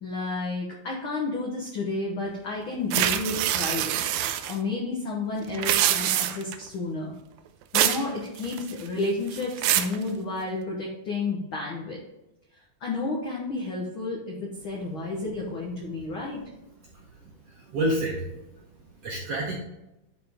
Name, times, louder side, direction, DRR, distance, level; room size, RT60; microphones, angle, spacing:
voice 1, 0.0-4.1 4.5-7.1 7.7-12.0 12.8-16.4, left 3 dB, 75° left, -2 dB, 1.1 m, -31 dB
sound 1, 2.9-4.6 5.5-6.6 7.8-8.1 8.4-8.9 9.3-10.0, right 12 dB, 85° right, 2.3 m, -25 dB
voice 2, 17.5-18.3 19.0-19.5, right 1 dB, 70° right, -1 dB, 1.5 m, -28 dB
11.0 x 4.3 x 3.5 m, 0.92 s
omnidirectional pair, 4.0 m